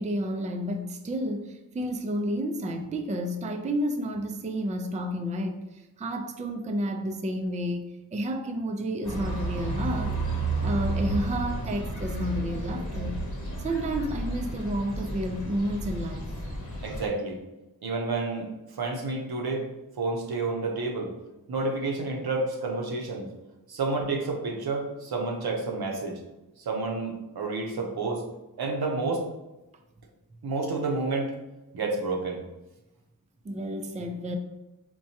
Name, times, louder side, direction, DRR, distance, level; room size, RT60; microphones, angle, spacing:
voice 1, 0.0-10.2 10.6-13.2 13.6-16.3 33.4-34.4, right 1 dB, 20° right, 0.3 m, -31 dB
sound 1, 9.0-17.1, right 2 dB, 55° left, 1.0 m, -32 dB
voice 2, 16.8-17.4 17.8-18.5 18.7-19.6 20.0-21.1 21.5-23.3 23.7-26.2 26.6-28.2 28.6-29.2 30.4-31.3 31.7-32.4, right 3 dB, 80° right, 0.7 m, -29 dB
4.4 x 2.2 x 2.7 m
cardioid pair, 50°, 37 cm